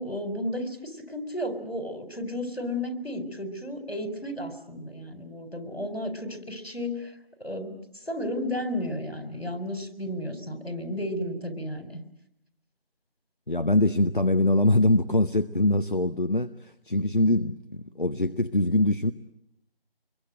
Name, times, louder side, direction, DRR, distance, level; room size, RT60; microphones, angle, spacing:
voice 1, 0.0-7.1 7.4-7.8 8.1-12.0, left 1 dB, 75° left, 8 dB, 4.6 m, -33 dB
voice 2, 13.5-19.1, left 1 dB, 55° left, 10 dB, 0.9 m, -23 dB
26.0 x 22.5 x 7.8 m, 0.79 s
figure-of-eight pair, 175°, 30 cm